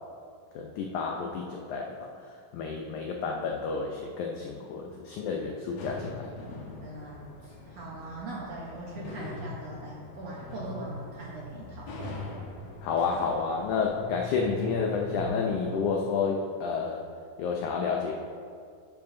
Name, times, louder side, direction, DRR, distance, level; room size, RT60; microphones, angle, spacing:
voice 1, 0.6-2.1 2.5-6.3 12.8-17.1 17.4-18.1, left 5 dB, 85° left, 1 dB, 1.7 m, -30 dB
sound 1, 5.8-15.7, left 2 dB, 65° left, 1.8 m, -41 dB
voice 2, 6.8-12.2, right 2 dB, 80° right, -4 dB, 1.4 m, -41 dB
12.0 x 9.5 x 2.6 m, 2.3 s
omnidirectional pair, 4.3 m